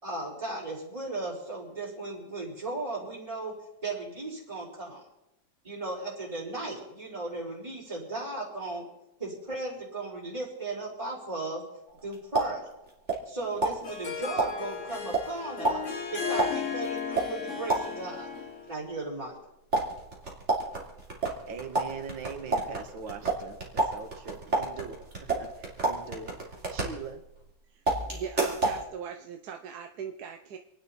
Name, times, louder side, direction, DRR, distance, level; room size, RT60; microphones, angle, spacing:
voice 1, 0.0-3.5 3.8-5.0 5.6-8.8 9.2-11.6 12.0-12.6 13.2-15.8 16.1-18.3 18.6-19.3, right 2 dB, 15° right, -9 dB, 4.5 m, -36 dB
sound 1, 11.9-13.4 13.6-18.2 19.7-27.5 27.9-28.8, right 2 dB, 35° right, 3.3 m, -31 dB
Harp, 13.4-18.8, left 6 dB, 40° left, 1.9 m, -35 dB
voice 2, 21.5-25.1 25.3-27.2, right 5 dB, 90° right, 6 dB, 2.2 m, -41 dB
voice 3, 28.1-30.6, right 7 dB, 60° right, 5 dB, 1.3 m, -40 dB
28.5 x 10.0 x 4.2 m, 0.88 s
omnidirectional pair, 2.1 m